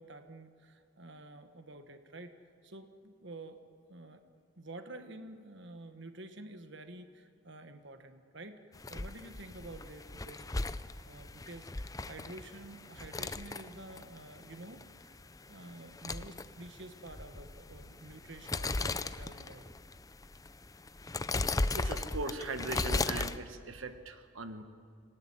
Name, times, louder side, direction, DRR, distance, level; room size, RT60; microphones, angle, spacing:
voice 1, 0.0-2.3 2.6-3.6 3.9-4.2 4.6-8.6 8.9-10.7 11.1-15.1 15.5-19.7, right 2 dB, 60° right, 8 dB, 1.4 m, -49 dB
sound 1, 8.7-23.4, left 2 dB, 15° left, 0.6 m, -37 dB
voice 2, 21.7-24.6, right 2 dB, 85° right, 8 dB, 1.4 m, -39 dB
26.5 x 17.5 x 9.9 m, 2.3 s
head